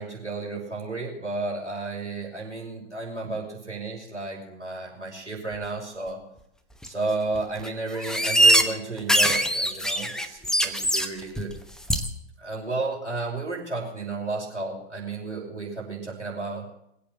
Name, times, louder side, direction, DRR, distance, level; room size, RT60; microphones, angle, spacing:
voice 1, 0.0-6.2 6.9-11.5 12.4-16.6, right 3 dB, 85° right, -3 dB, 5.8 m, -32 dB
sound 1, 6.8-6.9 7.3-7.7 8.0-8.7 9.0-11.1 11.4-11.6 11.9-12.1, right 1 dB, ahead, 1.0 m, -21 dB
21.0 x 8.7 x 7.9 m, 0.77 s
figure-of-eight pair, 100°, 34 cm